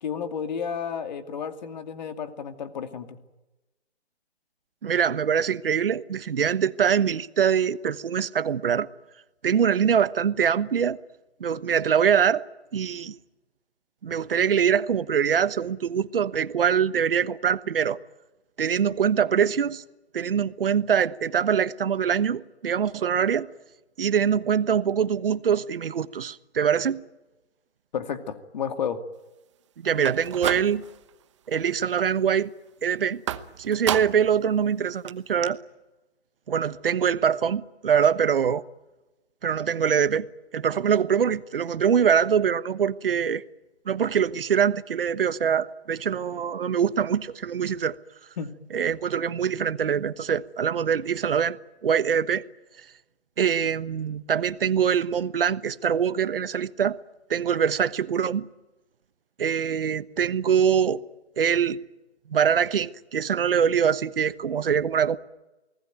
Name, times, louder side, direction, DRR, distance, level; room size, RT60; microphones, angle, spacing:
voice 1, 0.0-3.2 27.9-29.0 48.4-48.5, left 7 dB, 40° left, 2.5 m, -32 dB
voice 2, 4.8-8.9 9.4-11.0 11.4-12.4 12.7-13.1 14.0-18.0 18.6-19.8 20.1-23.5 24.0-27.0 29.8-30.8 31.5-32.5 32.8-33.2 33.6-35.6 36.5-38.6 39.4-40.3 40.5-43.4 43.9-48.0 48.7-51.6 51.8-52.4 53.4-57.0 57.3-58.5 59.4-61.0 61.4-61.8 62.3-65.2, right 7 dB, 55° right, 1.2 m, -23 dB
sound 1, 29.9-31.1 31.5-32.0 33.3-34.4 34.7-34.8 35.1-35.2 35.4-35.5, right 10 dB, 25° right, 1.0 m, -32 dB
29.0 x 20.0 x 9.2 m
hypercardioid pair, 155°, 34 cm